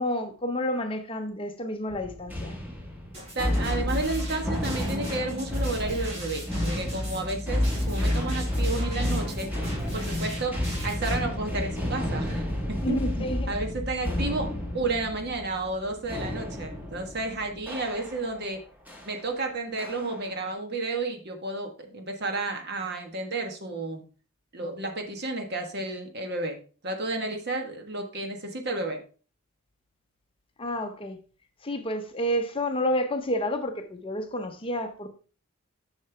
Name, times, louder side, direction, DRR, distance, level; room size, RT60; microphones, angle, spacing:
voice 1, 0.0-2.6 9.9-10.1 12.8-13.5 30.6-31.2 31.6-35.1, left 1 dB, 25° left, 0.7 m, -30 dB
sound 1, 1.9-18.4 18.9-19.2 19.8-20.3, left 1 dB, 10° right, 1.5 m, -31 dB
sound 2, 3.1-11.1, right 1 dB, 30° right, 3.1 m, -40 dB
voice 2, 3.3-9.5 9.9-12.6 12.9-18.6 19.0-24.0 24.5-29.0, right 2 dB, 50° right, 1.3 m, -32 dB
7.4 x 6.5 x 3.3 m
head